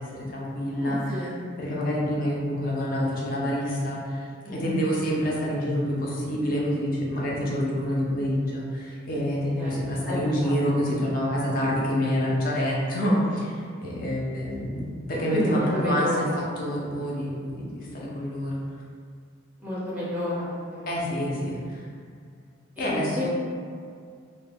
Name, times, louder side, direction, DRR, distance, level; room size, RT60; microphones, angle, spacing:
voice 1, 0.0-1.3 1.6-13.5 13.8-16.3 16.6-18.6 20.9-21.8 22.8-23.3, equal, 45° left, -5 dB, 0.5 m, -27 dB
voice 2, 0.7-1.4 4.4-4.8 9.6-10.8 13.2-13.4 15.3-16.5 19.6-20.4 20.7-21.2 22.8-23.3, equal, 5° right, -8 dB, 0.4 m, -30 dB
2.1 x 2.1 x 3.3 m, 2.2 s
head